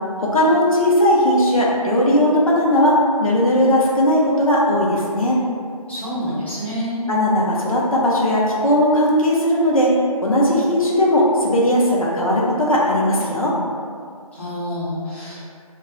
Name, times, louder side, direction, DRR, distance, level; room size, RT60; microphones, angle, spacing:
voice 1, 0.2-5.4 7.1-9.9 10.2-13.5, left 1 dB, 65° left, -4 dB, 0.7 m, -17 dB
voice 2, 5.9-7.0 14.3-15.4, equal, 20° left, -14 dB, 0.4 m, -27 dB
2.3 x 2.1 x 3.6 m, 2.2 s
figure-of-eight pair, 170°, 19 cm